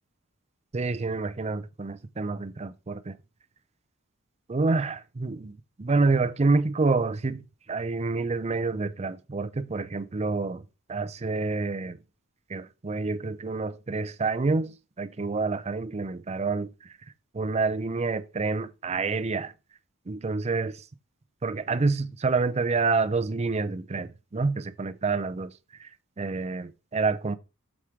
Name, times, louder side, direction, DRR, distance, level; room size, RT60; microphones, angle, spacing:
voice 1, 0.7-3.2 4.5-7.4 7.7-10.6 10.9-12.0 12.5-16.7 17.3-19.5 20.1-20.8 21.4-25.5 25.8-25.9 26.2-27.3, right 3 dB, 30° right, 0.5 m, -28 dB
7.3 x 4.9 x 4.5 m
head